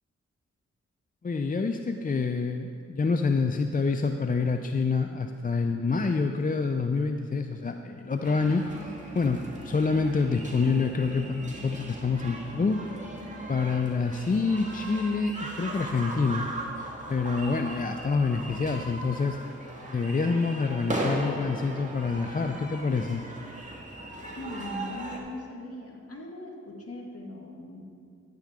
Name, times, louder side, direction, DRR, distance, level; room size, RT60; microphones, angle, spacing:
voice 1, 1.2-8.7 9.1-12.8 13.5-16.5 17.1-19.4 19.9-23.2, left 4 dB, 30° left, 6 dB, 0.5 m, -27 dB
sound 1, 8.2-25.2, right 1 dB, 25° right, 1.7 m, -38 dB
voice 2, 24.3-27.8, left 2 dB, 55° left, 0 dB, 1.7 m, -40 dB
11.0 x 9.1 x 3.6 m, 2.3 s
cardioid pair, 55°, 29 cm